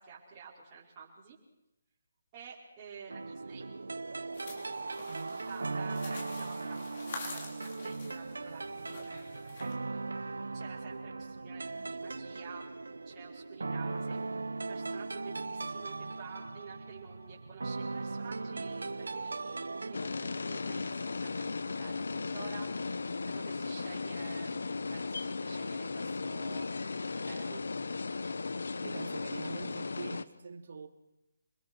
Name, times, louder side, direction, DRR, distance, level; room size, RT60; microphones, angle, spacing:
voice 1, 0.0-1.4 2.3-3.7 5.4-10.0 10.5-14.4 14.7-23.0 23.3-24.6 24.9-26.7 27.0-27.8, right 6 dB, 25° right, -8 dB, 5.5 m, -51 dB
sound 1, 3.1-19.9, right 3 dB, 80° right, 1.1 m, -39 dB
sound 2, 4.3-9.7, left 3 dB, 45° left, 5.9 m, -47 dB
voice 2, 5.1-5.4 28.8-30.9, right 4 dB, 60° right, 7 dB, 2.7 m, -44 dB
sound 3, 19.9-30.3, left 4 dB, 75° left, 1.2 m, -36 dB
27.0 x 21.5 x 6.4 m, 0.90 s
figure-of-eight pair, 155°, 0 cm